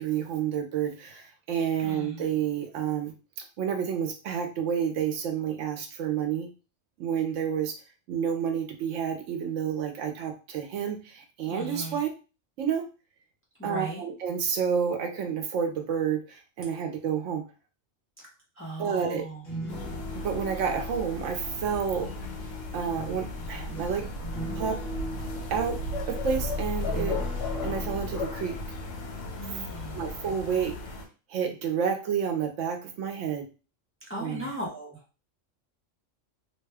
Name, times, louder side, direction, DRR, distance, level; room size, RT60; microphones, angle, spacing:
voice 1, 0.0-3.1 3.6-6.5 7.0-7.7 8.1-12.1 12.6-12.8 13.6-17.4 18.8-19.2 20.2-22.1 22.7-24.1 24.5-24.8 25.5-25.8 26.1-27.2 27.6-28.5 29.9-30.7 31.3-33.4 34.2-34.5, right 7 dB, 75° right, 5 dB, 0.9 m, -29 dB
voice 2, 1.8-2.2 11.5-12.0 13.6-14.0 18.2-18.3 18.6-19.4 29.4-30.1 34.1-35.0, equal, 15° left, -3 dB, 0.6 m, -37 dB
sound 1, 19.3-22.1 22.9-29.9 30.2-30.5, right 1 dB, 45° left, 1.1 m, -41 dB
sound 2, 19.7-31.0, left 3 dB, 90° left, 1.2 m, -35 dB
2.7 x 2.2 x 3.3 m, 0.32 s
omnidirectional pair, 1.3 m